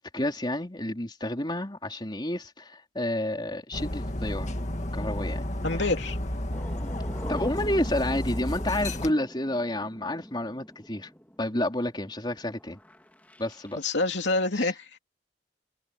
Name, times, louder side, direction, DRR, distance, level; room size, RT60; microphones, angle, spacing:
voice 1, 0.0-4.5 4.9-5.4 7.3-11.1 11.4-12.8 13.4-13.8 14.6-14.7, left 1 dB, 25° left, 4.0 m, -30 dB
Dog, 3.7-9.1, left 1 dB, 40° left, 1.9 m, -32 dB
voice 2, 5.6-6.2 13.8-14.9, left 2 dB, 70° left, 2.8 m, -27 dB
sound 1, 6.5-14.0, equal, 10° left, 2.1 m, -43 dB
head